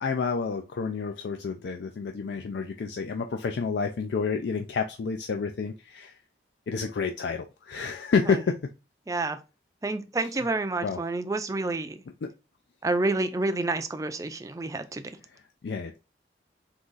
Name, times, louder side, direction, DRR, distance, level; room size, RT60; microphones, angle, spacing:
voice 1, 0.0-6.2 6.7-8.7 10.2-10.5 10.8-11.0 12.2-12.3 15.3-16.0, left 5 dB, 75° left, 0.4 m, -29 dB
voice 2, 9.1-9.4 9.8-12.0 12.8-15.0, right 2 dB, 20° right, 0.4 m, -29 dB
3.8 x 3.0 x 3.8 m
head